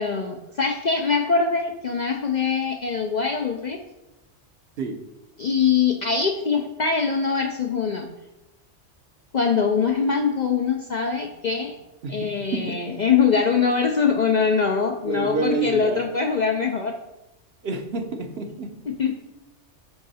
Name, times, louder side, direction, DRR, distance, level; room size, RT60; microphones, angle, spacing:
voice 1, 0.0-3.8 5.4-8.1 9.3-11.7 12.1-17.0 18.9-19.1, left 5 dB, 55° left, 3 dB, 0.5 m, -23 dB
voice 2, 15.0-16.1 17.6-18.7 19.1-19.2, right 3 dB, 60° right, 5 dB, 0.9 m, -28 dB
9.5 x 3.7 x 4.1 m, 0.96 s
omnidirectional pair, 1.2 m